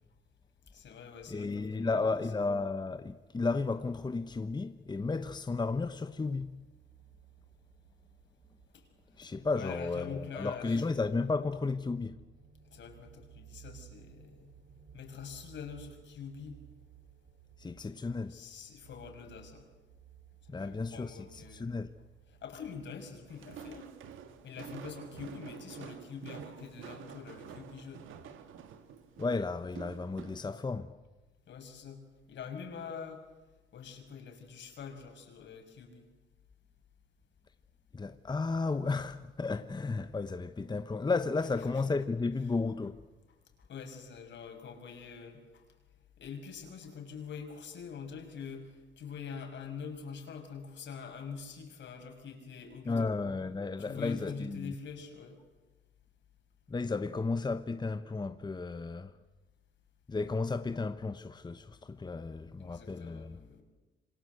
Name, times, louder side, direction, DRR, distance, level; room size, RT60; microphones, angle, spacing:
voice 1, 0.7-2.2 8.7-8.9 9.2-10.9 12.7-14.5 14.9-16.6 18.3-19.7 20.6-21.7 22.4-23.9 24.4-28.1 31.5-32.0 32.3-33.2 33.7-36.1 43.6-45.6 46.2-53.1 53.8-55.4 62.6-63.6, left 6 dB, 70° left, 6.0 m, -45 dB
voice 2, 1.3-6.5 9.2-12.2 17.6-18.3 20.5-21.9 29.2-30.9 37.9-43.0 52.9-54.7 56.7-59.1 60.1-63.4, left 3 dB, 20° left, 1.1 m, -33 dB
sound 1, 5.3-24.0, right 11 dB, 60° right, 3.0 m, -58 dB
Walk footsteps, 23.3-30.5, right 8 dB, 85° right, 2.1 m, -48 dB
27.0 x 25.5 x 8.0 m
cardioid pair, 90°, 20 cm